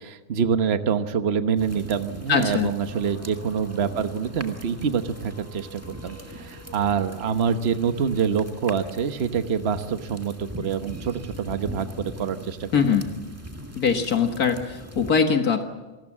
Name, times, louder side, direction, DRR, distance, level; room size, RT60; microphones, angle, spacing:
voice 1, 0.0-12.7, right 7 dB, 45° right, 9 dB, 1.3 m, -26 dB
sound 1, 1.6-15.1, equal, 10° right, 1.7 m, -41 dB
voice 2, 2.3-2.7 12.7-13.1 13.8-15.6, left 6 dB, 75° left, 6 dB, 2.0 m, -22 dB
sound 2, 2.9-11.8, equal, 10° left, 7.5 m, -50 dB
27.5 x 19.5 x 7.4 m, 1.2 s
omnidirectional pair, 1.6 m